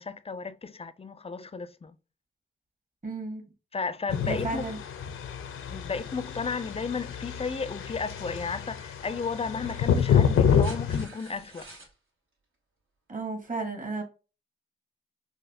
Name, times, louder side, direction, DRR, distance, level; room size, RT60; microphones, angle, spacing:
voice 1, 0.0-2.0 3.7-4.7 5.7-11.7, left 4 dB, 30° left, 0.4 m, -34 dB
voice 2, 3.0-3.4 4.3-4.8 13.1-14.0, right 3 dB, 40° right, 1.5 m, -33 dB
sound 1, 4.1-11.1, left 7 dB, 90° left, 0.5 m, -28 dB
sound 2, 9.5-11.9 13.4-13.5, right 2 dB, 75° right, 1.7 m, -49 dB
4.1 x 2.5 x 2.6 m
cardioid pair, 55°, 21 cm